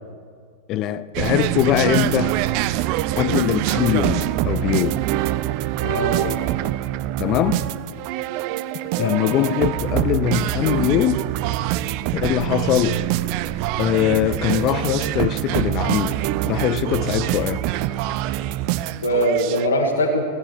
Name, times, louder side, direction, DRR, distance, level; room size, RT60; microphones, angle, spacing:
voice 1, 0.7-2.4 3.2-5.0 7.2-7.7 9.0-11.2 12.1-13.0 13.8-16.2 16.4-17.6, left 12 dB, 35° left, 0.6 m, -22 dB
sound 1, 1.1-19.7, right 15 dB, 45° right, 0.5 m, -24 dB
voice 2, 5.8-6.4 9.0-9.2 19.0-20.2, equal, 70° left, 1.7 m, -22 dB
16.5 x 11.0 x 7.1 m
figure-of-eight pair, 90°, 0 cm